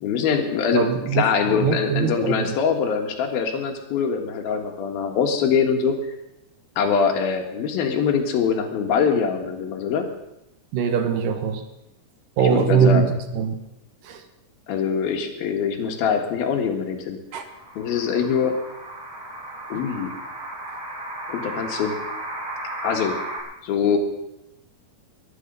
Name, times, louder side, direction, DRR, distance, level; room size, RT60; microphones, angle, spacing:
voice 1, 0.0-6.0 6.8-10.1 12.4-13.1 14.7-17.2 17.8-18.6 19.7-20.1 21.3-22.0 22.8-23.2 23.6-24.0, left 6 dB, 80° left, 4 dB, 3.6 m, -23 dB
voice 2, 0.7-2.6 10.7-11.6 12.4-13.6 14.1-14.2 17.3-17.5, right 7 dB, 75° right, 8 dB, 2.8 m, -22 dB
sound 1, 17.4-23.4, right 1 dB, 40° right, 5.5 m, -34 dB
22.5 x 10.0 x 5.5 m, 0.87 s
omnidirectional pair, 4.2 m